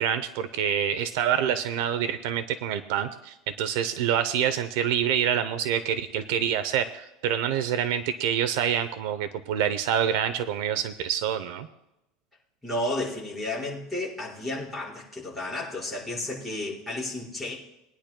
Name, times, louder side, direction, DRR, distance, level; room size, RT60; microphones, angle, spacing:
voice 1, 0.0-11.7, right 9 dB, 60° right, 11 dB, 0.6 m, -26 dB
voice 2, 12.6-17.5, left 1 dB, ahead, -9 dB, 5.0 m, -32 dB
22.0 x 10.0 x 2.2 m, 0.90 s
supercardioid pair, 180°, 0 cm